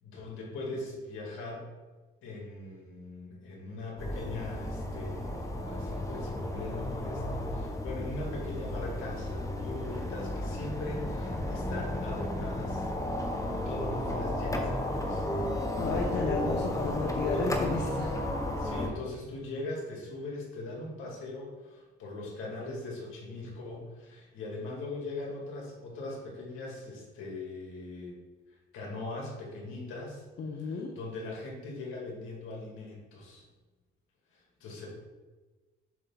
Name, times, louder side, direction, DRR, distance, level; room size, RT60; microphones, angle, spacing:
voice 1, 0.0-1.7 2.2-12.9 13.7-15.3 17.3-17.5 18.6-28.2 28.5-30.3 30.6-33.4 34.3-34.9, left 2 dB, 85° left, -3 dB, 2.4 m, -40 dB
sound 1, 4.0-18.9, left 1 dB, 15° left, 1.1 m, -33 dB
voice 2, 15.8-18.2 30.4-30.9, left 4 dB, 60° left, -1 dB, 1.0 m, -33 dB
7.4 x 3.4 x 5.8 m, 1.3 s
cardioid pair, 90°, 20 cm